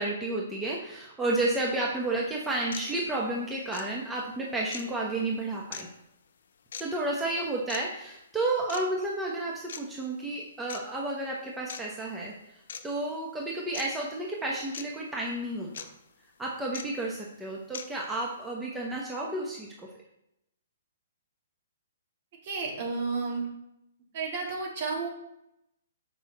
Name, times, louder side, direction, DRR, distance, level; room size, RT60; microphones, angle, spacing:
voice 1, 0.0-5.9 6.8-12.3 12.8-15.7 16.4-19.9, right 2 dB, 10° right, -3 dB, 1.0 m, -31 dB
sound 1, 2.0-2.1 2.7-2.9 3.7-3.9 4.7-4.9 5.7-5.8 6.7-6.9 7.7-7.8 8.7-8.9 9.7-9.8 10.7-10.8 11.7-11.8 12.7-12.8 13.7-13.9 14.7-14.9 15.7-15.9 16.7-16.9 17.7-17.9, left 7 dB, 70° left, 0.7 m, -39 dB
voice 2, 22.4-23.5 24.1-25.1, right 4 dB, 50° right, -2 dB, 2.5 m, -31 dB
6.2 x 5.4 x 4.2 m, 0.83 s
hypercardioid pair, 140°, 0 cm